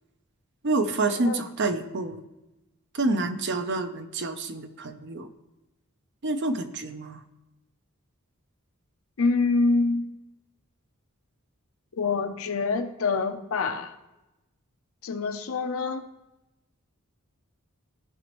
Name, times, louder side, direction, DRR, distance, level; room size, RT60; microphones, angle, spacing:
voice 1, 0.6-2.2 2.9-5.3 6.2-7.2, right 2 dB, 55° right, 9 dB, 0.6 m, -28 dB
voice 2, 9.2-10.1 12.0-13.9 15.0-16.0, left 3 dB, 70° left, 8 dB, 0.6 m, -26 dB
14.5 x 5.2 x 3.1 m, 1.0 s
head